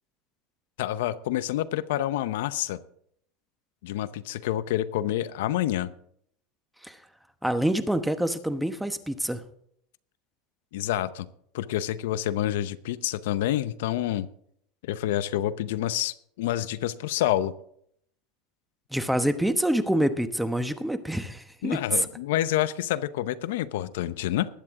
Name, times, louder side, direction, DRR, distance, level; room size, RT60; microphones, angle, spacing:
voice 1, 0.8-2.8 3.8-5.9 10.7-11.3 11.5-14.3 14.8-17.5 21.6-24.5, left 13 dB, 80° left, 15 dB, 0.7 m, -28 dB
voice 2, 7.4-9.4 18.9-22.1, right 1 dB, ahead, 10 dB, 0.9 m, -26 dB
20.0 x 9.0 x 3.7 m, 0.67 s
supercardioid pair, 145°, 0 cm